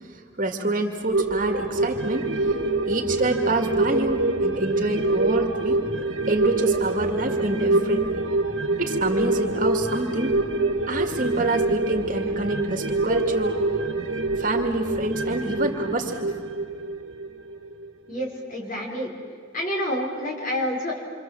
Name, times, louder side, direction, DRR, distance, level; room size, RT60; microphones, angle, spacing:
voice 1, 0.1-2.5 2.9-5.8 6.3-8.2 8.8-10.4 10.9-13.6 14.4-16.3, right 2 dB, 40° right, 3 dB, 2.1 m, -27 dB
sound 1, 1.1-17.9 18.2-18.3, right 2 dB, 75° right, 1.8 m, -25 dB
voice 2, 18.1-19.1 19.5-21.0, equal, 40° left, -1 dB, 5.5 m, -28 dB
27.5 x 25.5 x 7.7 m, 2.1 s
head